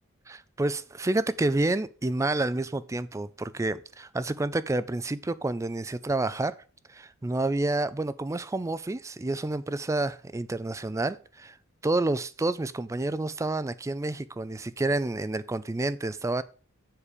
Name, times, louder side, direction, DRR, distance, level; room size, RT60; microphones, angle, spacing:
voice 1, 0.3-6.6 6.9-11.6 11.8-16.4, right 2 dB, 15° right, 0.3 m, -29 dB
7.4 x 5.1 x 6.5 m
head